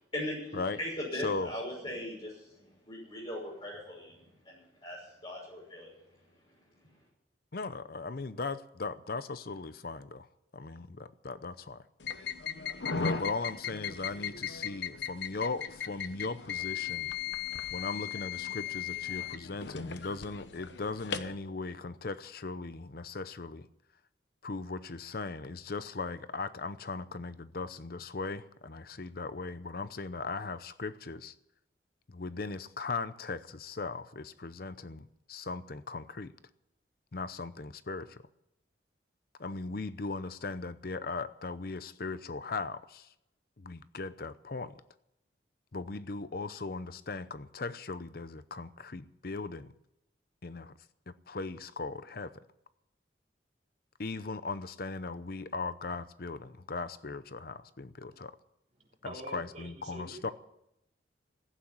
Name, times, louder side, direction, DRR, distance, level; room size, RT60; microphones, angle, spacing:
voice 1, 0.1-4.2 4.4-5.9, left 1 dB, 30° left, 6.5 m, -39 dB
voice 2, 1.1-1.5 7.5-10.3 10.5-11.8 13.0-17.1 17.7-23.7 24.4-31.3 32.1-36.3 37.1-38.2 39.4-43.1 43.6-44.7 45.7-49.7 50.4-50.7 51.1-52.3 54.0-58.3 59.0-60.3, left 3 dB, 55° left, 0.7 m, -38 dB
sound 1, 12.0-21.3, left 7 dB, 75° left, 1.0 m, -37 dB
voice 3, 58.8-60.3, right 2 dB, 40° right, 3.5 m, -46 dB
15.5 x 8.8 x 10.0 m
head